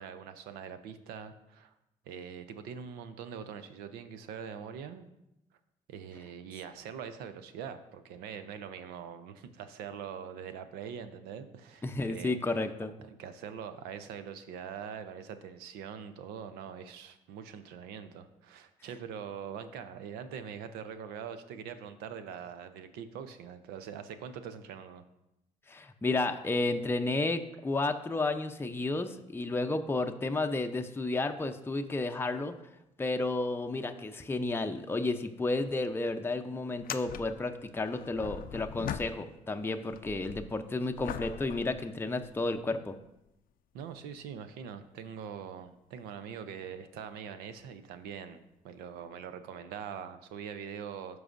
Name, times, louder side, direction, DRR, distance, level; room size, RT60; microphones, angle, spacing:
voice 1, 0.0-1.7 2.1-5.1 5.9-12.4 13.2-25.0 43.7-51.2, right 7 dB, 85° right, 10 dB, 0.6 m, -43 dB
voice 2, 11.8-12.9 25.7-32.5 33.0-42.9, left 2 dB, 15° left, 5 dB, 0.6 m, -32 dB
sound 1, 35.4-35.5 35.8-35.9 36.7-39.6 39.9-42.6 43.3-43.4 47.5-47.6 49.0-49.1, left 9 dB, 65° left, 0.4 m, -42 dB
13.0 x 4.8 x 2.5 m, 0.87 s
supercardioid pair, 60°, 16 cm